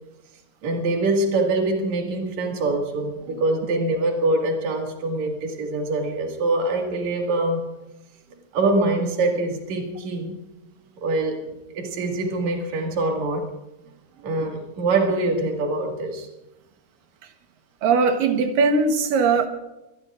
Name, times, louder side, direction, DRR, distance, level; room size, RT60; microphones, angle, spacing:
voice 1, 0.6-7.7 8.5-10.4 11.0-13.5 14.2-16.3, right 2 dB, 60° right, 3.2 m, -24 dB
voice 2, 17.8-19.5, right 4 dB, 80° right, 2.9 m, -19 dB
25.0 x 20.0 x 2.5 m
omnidirectional pair, 3.9 m